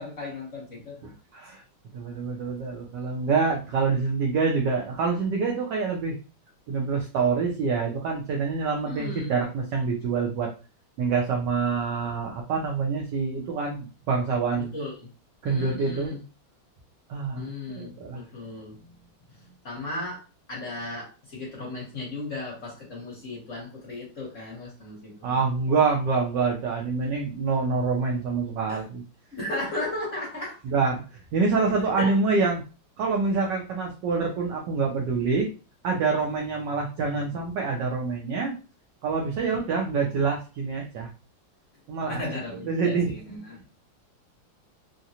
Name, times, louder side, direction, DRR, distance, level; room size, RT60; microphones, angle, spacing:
voice 1, 0.0-1.1 1.5-1.6 8.9-9.3 14.7-15.1 15.4-16.2 17.3-18.9 19.3-20.2 20.5-25.4 28.7-28.8 29.3-30.6 31.8-32.1 39.4-39.6 42.1-43.6, left 2 dB, 45° left, -3 dB, 1.1 m, -36 dB
voice 2, 1.0-1.6 1.9-6.1 6.7-10.5 11.0-14.7 15.4-16.1 17.1-18.2 25.2-29.0 30.6-31.0 31.3-32.6 33.0-35.5 35.8-38.5 39.0-41.1 41.9-42.2 42.7-43.1, right 4 dB, 65° right, 0 dB, 1.2 m, -26 dB
3.8 x 2.2 x 2.8 m, 0.33 s
omnidirectional pair, 2.3 m